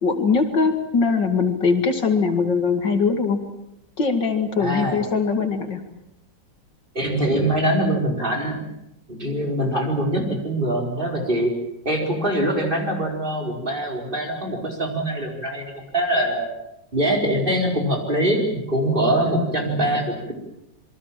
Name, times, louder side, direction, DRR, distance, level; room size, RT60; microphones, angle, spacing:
voice 1, 0.0-3.4 4.0-5.8, left 5 dB, 70° left, 6 dB, 2.9 m, -21 dB
voice 2, 4.6-5.0 6.9-8.7 9.1-11.5 11.8-16.5 16.9-20.3, right 1 dB, 25° right, 1 dB, 5.0 m, -23 dB
27.5 x 23.0 x 7.5 m, 0.83 s
omnidirectional pair, 2.0 m